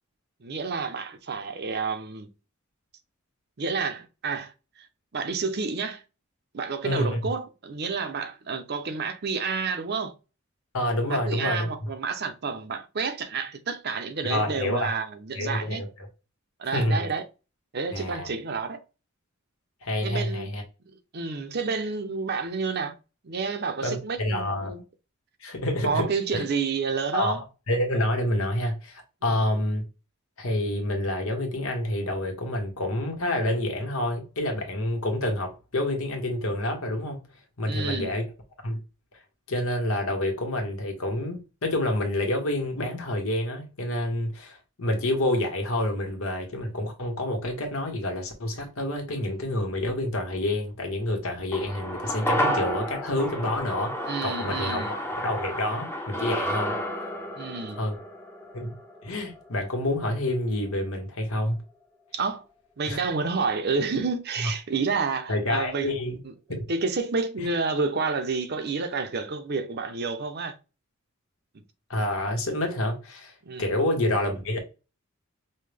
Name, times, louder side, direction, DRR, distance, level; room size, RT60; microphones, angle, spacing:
voice 1, 0.4-2.3 3.6-4.5 4.8-4.9 5.1-6.0 6.5-10.1 11.1-15.8 16.6-17.2 17.7-18.8 20.0-20.5 21.1-22.9 23.2-24.8 25.8-27.4 29.3-29.4 37.7-38.1 54.1-54.9 57.4-57.8 62.1-62.4 62.8-66.0 66.2-66.3 66.7-70.5 73.4-73.7, right 4 dB, 50° right, 0.6 m, -29 dB
voice 2, 6.8-7.2 10.7-11.9 14.3-14.9 15.3-15.9 16.7-17.1 17.9-18.3 19.8-20.6 23.8-24.7 25.4-26.4 27.1-29.8 30.4-37.2 37.6-38.2 38.6-38.8 39.5-53.9 54.2-55.0 55.2-56.7 57.8-58.0 58.5-58.7 59.0-61.6 62.9-63.0 64.4-64.5 65.3-66.2 66.5-66.6 67.4-67.5 71.9-73.3 73.6-74.6, left 1 dB, 85° left, 1.2 m, -28 dB
sound 1, 51.5-60.0 60.3-60.4, equal, 10° left, 0.7 m, -31 dB
5.4 x 2.2 x 3.3 m
head